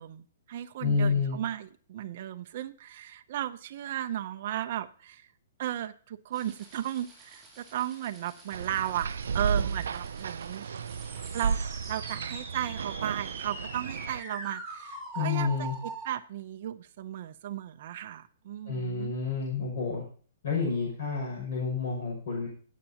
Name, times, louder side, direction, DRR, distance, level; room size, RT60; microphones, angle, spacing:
voice 1, 0.0-5.3 5.6-10.7 11.3-11.6 11.9-15.7 16.0-19.1, right 12 dB, 40° right, 7 dB, 0.6 m, -35 dB
voice 2, 0.8-1.4 15.1-15.8 18.7-20.0 20.4-22.5, left 5 dB, 55° left, -3 dB, 6.3 m, -29 dB
sound 1, 6.3-16.1, right 3 dB, 5° right, 2.8 m, -44 dB
sound 2, 8.5-14.2, right 6 dB, 85° right, 0.4 m, -33 dB
20.0 x 8.3 x 2.9 m, 0.43 s
hypercardioid pair, 175°, 0 cm